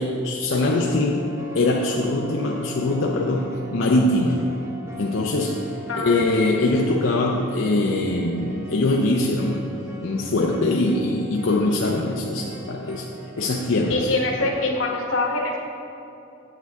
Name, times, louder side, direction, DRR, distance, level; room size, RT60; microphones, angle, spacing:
voice 1, 0.0-4.5 5.0-9.7 10.0-13.1 13.4-14.1, left 2 dB, 65° left, -1 dB, 0.6 m, -22 dB
sound 1, 0.6-14.7, equal, 15° right, 0.8 m, -40 dB
voice 2, 5.9-6.2 13.9-15.6, left 2 dB, 90° left, 0 dB, 1.3 m, -24 dB
8.8 x 7.9 x 3.6 m, 2.7 s
head